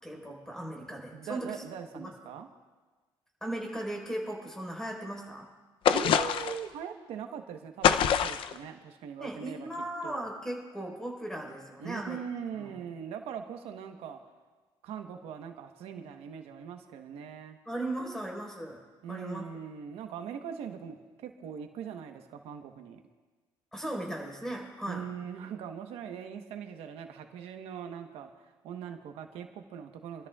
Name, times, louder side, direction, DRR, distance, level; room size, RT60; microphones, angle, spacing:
voice 1, 0.0-1.6 1.9-2.1 3.4-5.5 9.2-12.2 12.5-12.7 17.6-18.8 19.1-19.4 23.7-25.0, right 1 dB, 5° left, -1 dB, 4.3 m, -37 dB
voice 2, 1.1-2.5 5.9-9.7 10.0-10.3 11.8-14.2 14.8-17.6 19.0-23.0 24.9-30.3, right 8 dB, 85° right, 5 dB, 1.1 m, -41 dB
sound 1, 5.9-6.7 7.8-8.6, left 8 dB, 65° left, 0.6 m, -24 dB
26.5 x 13.5 x 2.4 m, 1.3 s
cardioid pair, 120°, 10 cm